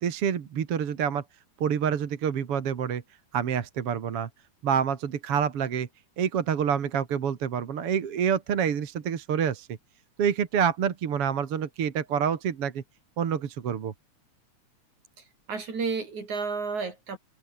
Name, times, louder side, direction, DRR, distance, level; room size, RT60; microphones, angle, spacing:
voice 1, 0.0-1.2 1.6-3.0 3.3-4.3 4.6-5.9 6.2-9.7 10.2-12.8 13.2-13.9, right 8 dB, 50° right, 2.5 m, -27 dB
voice 2, 15.2-17.2, right 4 dB, 65° right, 6.4 m, -32 dB
open air
omnidirectional pair, 3.6 m